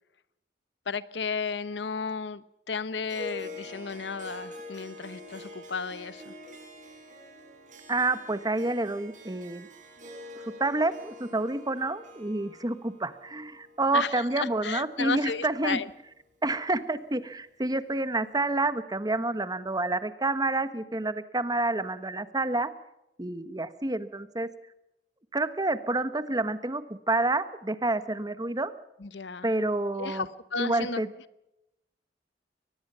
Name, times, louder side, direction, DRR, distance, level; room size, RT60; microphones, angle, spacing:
voice 1, 0.9-6.3 13.9-15.9 29.0-29.5 30.0-31.0, left 5 dB, 85° left, 16 dB, 0.9 m, -33 dB
Harp, 3.0-15.6, left 1 dB, 45° right, 5.4 m, -46 dB
voice 2, 7.9-9.7 10.4-15.8 16.4-22.7 23.2-24.5 25.3-28.7 29.4-30.3 30.6-31.1, right 2 dB, 20° right, 13 dB, 1.2 m, -28 dB
23.5 x 19.5 x 5.6 m, 0.88 s
head